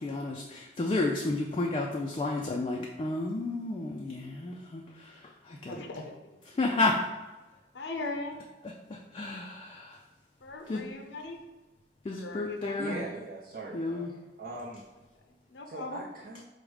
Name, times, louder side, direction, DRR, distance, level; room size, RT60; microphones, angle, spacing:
voice 1, 0.0-5.7 6.6-7.1 8.9-10.0 10.7-10.8 12.0-13.0 13.7-14.1, left 2 dB, 30° left, 0 dB, 0.3 m, -31 dB
voice 2, 5.5-6.1 7.7-8.4 10.4-11.4 12.1-13.0 15.3-16.0, left 2 dB, 85° left, 3 dB, 0.6 m, -39 dB
voice 3, 12.8-14.1 14.4-14.8 15.7-16.4, right 2 dB, 55° right, -5 dB, 0.6 m, -40 dB
4.8 x 2.1 x 4.7 m, 1.1 s
head